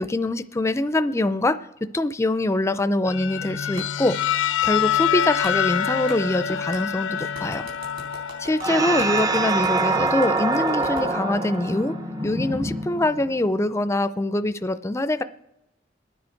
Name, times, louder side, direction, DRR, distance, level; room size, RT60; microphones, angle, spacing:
voice 1, 0.0-4.2 4.6-7.7 8.4-11.9 12.2-15.2, left 1 dB, 15° left, 12 dB, 0.4 m, -24 dB
sound 1, 3.1-13.0, left 9 dB, 90° left, 0.5 m, -28 dB
Clapping, 3.8-3.9 4.6-4.7 5.4-5.6 6.1-6.2 6.7-6.8 7.3-11.1, right 2 dB, 55° right, 4.4 m, -42 dB
sound 2, 8.6-13.4, right 3 dB, 20° right, 0.7 m, -25 dB
26.5 x 9.6 x 4.5 m, 0.93 s
head